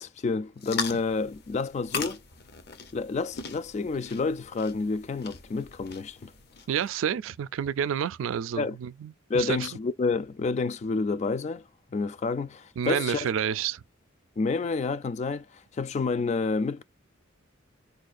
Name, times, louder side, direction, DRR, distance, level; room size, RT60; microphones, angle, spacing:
voice 1, 0.0-2.2 2.9-6.3 8.6-8.8 9.3-11.6 11.9-13.3 14.4-15.4 15.8-16.8, left 4 dB, 35° left, 0.3 m, -29 dB
sound 1, 0.6-6.9, left 5 dB, 55° left, 0.7 m, -39 dB
voice 2, 6.7-9.7 12.8-13.8, right 8 dB, 85° right, 0.3 m, -29 dB
4.4 x 2.3 x 2.5 m
head